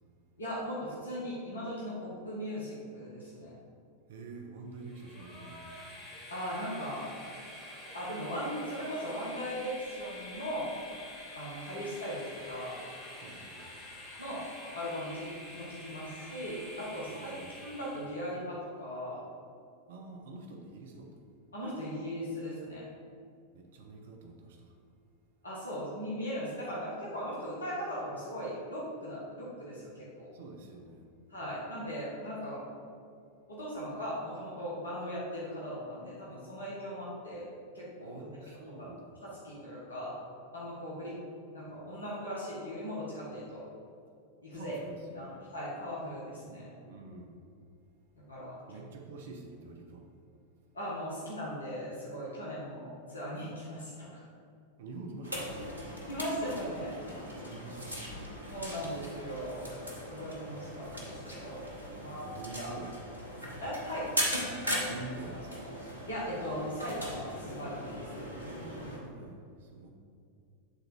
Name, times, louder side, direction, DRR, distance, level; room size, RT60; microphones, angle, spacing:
voice 1, 0.4-3.5 6.3-7.0 7.9-10.7 11.3-12.8 14.2-14.4 14.7-17.3 17.6-19.2 21.5-22.9 25.4-30.3 31.3-32.6 33.5-37.5 37.7-38.2 38.7-38.9 39.2-40.1 40.5-41.1 41.5-43.6 44.4-44.7 45.1-46.7 48.3-48.6 50.7-54.2 56.0-57.0 58.5-59.7 60.1-61.7 62.0-62.3 62.6-62.7 63.6-64.1 66.1-68.1, equal, 75° left, -7 dB, 1.5 m, -38 dB
voice 2, 4.1-5.7 13.2-13.6 17.1-17.6 19.9-21.2 23.5-24.8 30.3-31.1 38.0-39.1 44.5-45.4 46.8-47.4 48.7-50.1 54.8-55.7 57.0-58.3 61.9-63.2 64.8-65.7 68.4-69.9, right 3 dB, 55° right, 2 dB, 0.8 m, -47 dB
Train, 4.8-18.3, left 1 dB, 30° left, 1.5 m, -47 dB
sound 1, 55.2-69.0, equal, 80° right, 1.2 m, -39 dB
8.0 x 3.9 x 4.4 m, 2.4 s
figure-of-eight pair, 90°, 0 cm